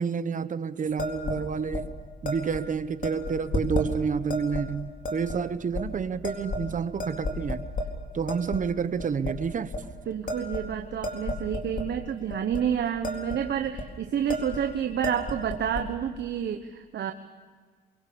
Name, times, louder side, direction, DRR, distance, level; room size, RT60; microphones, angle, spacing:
voice 1, 0.0-1.9 2.2-7.7 8.1-9.7, right 6 dB, 40° right, 1.1 m, -29 dB
sound 1, 1.0-1.4 1.7-1.9 2.2-2.6 3.0-3.9 4.3-4.6 5.0-5.4 5.7-5.8 6.2-6.7 7.0-7.9 8.3-8.6 9.0-9.3 9.7-9.9 10.3-11.9 12.3-12.6 12.9-13.4 13.6-13.9 14.3-14.6 14.9-15.8, left 1 dB, 40° left, 4.2 m, -32 dB
voice 2, 10.1-17.1, right 8 dB, 60° right, 1.2 m, -29 dB
24.0 x 23.5 x 7.0 m
cardioid pair, 90°, 20 cm